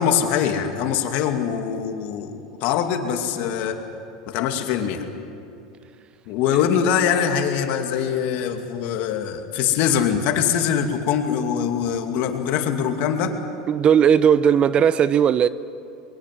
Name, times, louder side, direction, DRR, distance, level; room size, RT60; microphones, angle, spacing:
voice 1, 0.0-3.8 4.3-5.1 6.3-13.4, left 8 dB, 55° left, 2.5 m, -23 dB
voice 2, 13.7-15.5, right 8 dB, 35° right, 0.6 m, -17 dB
23.5 x 22.0 x 7.7 m
supercardioid pair, 115°, 3 cm